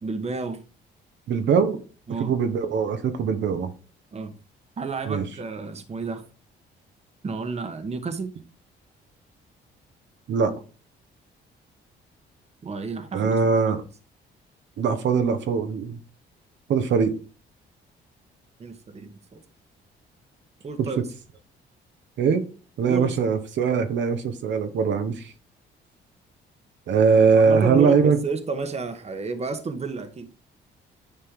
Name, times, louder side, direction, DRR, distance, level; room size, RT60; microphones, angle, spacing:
voice 1, 0.0-0.6 2.1-2.4 4.1-4.4 4.8-6.2 7.2-8.3 12.6-13.4 18.6-19.4 20.6-21.0 22.9-23.1 27.3-30.3, right 4 dB, 35° right, 1.1 m, -31 dB
voice 2, 1.3-1.8 2.2-3.7 5.1-5.2 10.3-10.5 13.1-13.8 14.8-16.0 16.7-17.2 20.8-20.9 22.2-22.4 22.8-25.3 26.9-28.2, right 5 dB, 70° right, 1.0 m, -21 dB
10.0 x 4.4 x 3.7 m
cardioid pair, 90°, 20 cm